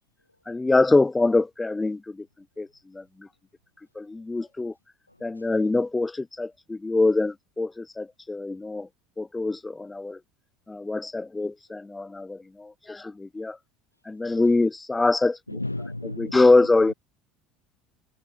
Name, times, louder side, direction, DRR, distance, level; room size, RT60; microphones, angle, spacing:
voice 1, 0.5-2.3 2.6-2.7 2.9-3.3 4.0-4.7 5.2-8.9 9.2-10.2 10.7-13.6 14.1-15.6 16.2-16.9, left 2 dB, 15° left, 0.6 m, -24 dB
voice 2, 15.5-16.5 16.9-17.0, left 2 dB, 85° left, 1.7 m, -33 dB
figure-of-eight pair, 65°, 0 cm